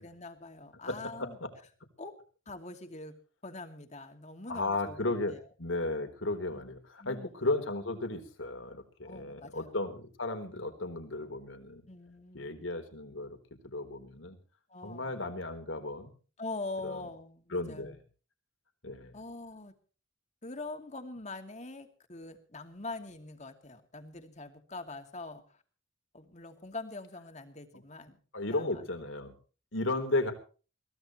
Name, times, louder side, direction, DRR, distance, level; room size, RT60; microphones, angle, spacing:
voice 1, 0.0-1.4 2.0-2.2 2.5-3.2 3.4-5.4 6.5-6.7 7.0-7.5 9.0-9.8 11.9-12.7 14.7-15.2 16.4-18.0 19.1-19.7 20.4-25.6 26.1-28.2 28.5-28.9, left 2 dB, 35° left, 6 dB, 2.6 m, -44 dB
voice 2, 0.9-1.3 4.5-11.8 12.3-13.4 13.6-14.4 14.8-16.1 16.8-17.0 17.5-17.9 18.8-19.1 28.3-29.3 29.7-30.3, left 2 dB, 75° left, 6 dB, 4.0 m, -34 dB
22.5 x 18.0 x 3.2 m, 0.38 s
head